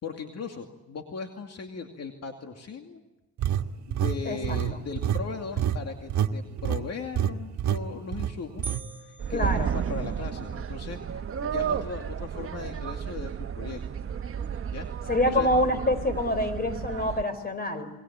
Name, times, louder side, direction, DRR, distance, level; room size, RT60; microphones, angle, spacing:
voice 1, 0.0-3.0 3.9-8.6 9.1-13.8 14.7-15.5, left 5 dB, 55° left, 4 dB, 2.6 m, -38 dB
sound 1, 3.4-6.3 6.6-6.8 7.2-7.3 7.6-7.8 8.1-8.8, right 10 dB, 75° right, 1.5 m, -27 dB
sound 2, 8.6-10.4, right 4 dB, 30° right, 5.7 m, -43 dB
sound 3, 9.2-17.2, right 7 dB, 45° right, 1.3 m, -32 dB
voice 2, 9.3-9.7 15.1-17.9, left 1 dB, 30° left, 12 dB, 4.5 m, -26 dB
28.5 x 22.0 x 8.8 m, 1.0 s
cardioid pair, 90°, 30 cm